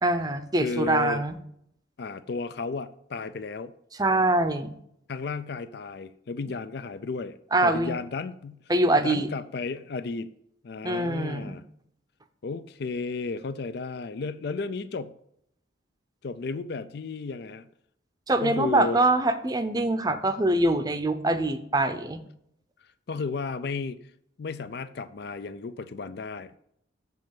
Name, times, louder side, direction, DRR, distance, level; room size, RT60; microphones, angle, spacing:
voice 1, 0.0-1.4 4.0-4.7 7.5-8.0 8.7-9.3 10.8-11.6 18.3-22.2, right 2 dB, 20° right, 9 dB, 0.6 m, -24 dB
voice 2, 0.6-1.2 2.0-3.7 5.1-8.6 9.0-10.3 10.6-11.6 12.4-15.1 16.2-17.7 18.4-19.0 23.1-24.0 24.4-26.6, left 4 dB, 55° left, 13 dB, 0.4 m, -33 dB
7.5 x 5.4 x 7.5 m, 0.72 s
head